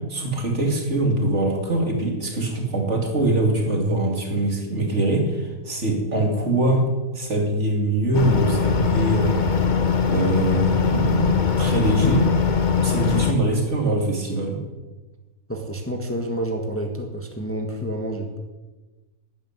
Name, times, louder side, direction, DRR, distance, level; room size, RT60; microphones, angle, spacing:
voice 1, 0.0-6.9 7.1-9.5 10.1-12.3 12.8-14.6, right 2 dB, 50° right, 2 dB, 2.8 m, -23 dB
sound 1, 8.1-13.3, left 6 dB, 35° left, 1.0 m, -21 dB
voice 2, 15.5-18.4, right 1 dB, 10° left, 3 dB, 1.5 m, -29 dB
12.5 x 9.3 x 9.7 m, 1.2 s
omnidirectional pair, 1.6 m